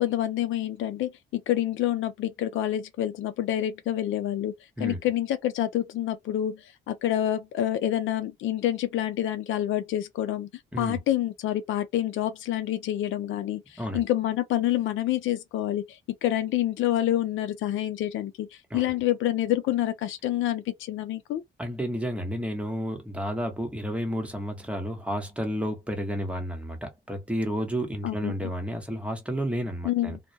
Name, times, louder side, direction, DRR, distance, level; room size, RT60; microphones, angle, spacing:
voice 1, 0.0-10.5 10.8-18.5 18.7-21.4 28.0-28.3 29.8-30.2, left 12 dB, 80° left, 0.5 m, -27 dB
voice 2, 21.6-30.2, equal, 5° right, 0.9 m, -31 dB
2.2 x 2.1 x 2.7 m
cardioid pair, 90°, 20 cm